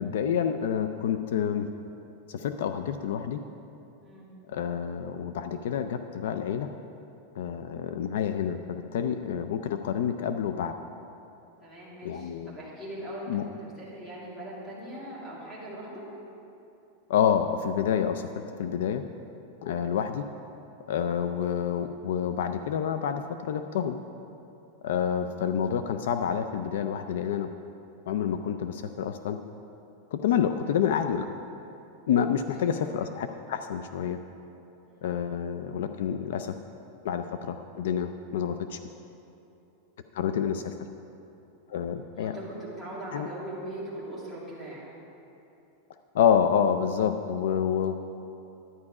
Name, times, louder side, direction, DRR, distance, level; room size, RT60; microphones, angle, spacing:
voice 1, 0.0-1.7 2.3-3.4 4.5-6.7 7.4-10.7 12.0-12.6 13.3-13.4 17.1-19.0 19.6-20.2 20.9-24.0 24.8-27.5 28.1-29.4 30.1-31.3 32.1-34.2 35.0-36.5 37.0-38.8 40.1-40.7 41.7-42.4 43.1-43.3 46.1-48.0, left 8 dB, 70° left, 9 dB, 0.4 m, -28 dB
voice 2, 4.0-4.3 11.6-16.1 25.0-25.2 32.5-33.1 34.8-35.1 41.9-44.9, right 1 dB, 10° left, -7 dB, 2.4 m, -41 dB
11.0 x 9.6 x 4.9 m, 2.9 s
supercardioid pair, 170°, 0 cm